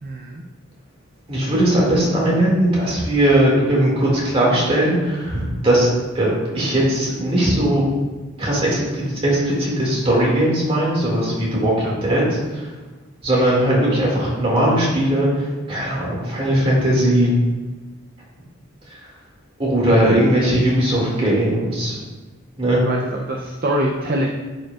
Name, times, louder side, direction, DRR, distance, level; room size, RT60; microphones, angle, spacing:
voice 1, 0.0-0.4 11.8-11.9 22.8-23.0 23.3-24.3, right 1 dB, 45° right, 0 dB, 0.5 m, -23 dB
voice 2, 1.3-5.9 6.1-7.8 8.4-12.7 13.2-17.3 18.9-19.1 19.6-22.0 22.6-22.8, right 1 dB, 25° right, -5 dB, 2.1 m, -19 dB
10.5 x 5.2 x 2.4 m, 1.3 s
head